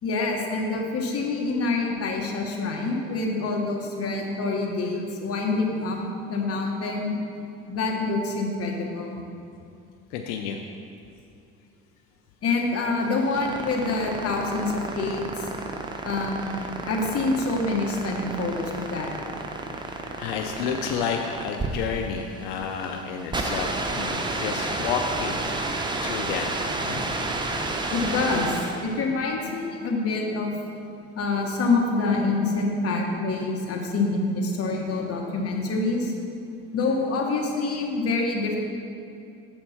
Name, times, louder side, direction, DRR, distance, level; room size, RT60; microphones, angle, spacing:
voice 1, 0.0-6.0 6.3-7.1 7.7-9.2 12.4-15.3 16.0-19.1 27.9-28.6 28.8-30.5 31.1-36.1 36.7-38.6, left 3 dB, 50° left, 1 dB, 1.3 m, -26 dB
voice 2, 10.1-10.6 20.2-25.4 26.0-27.2, left 6 dB, 90° left, 3 dB, 0.5 m, -30 dB
sound 1, 13.0-28.9, right 2 dB, 15° right, 0.7 m, -31 dB
7.1 x 4.3 x 5.7 m, 2.6 s
supercardioid pair, 85°, 31 cm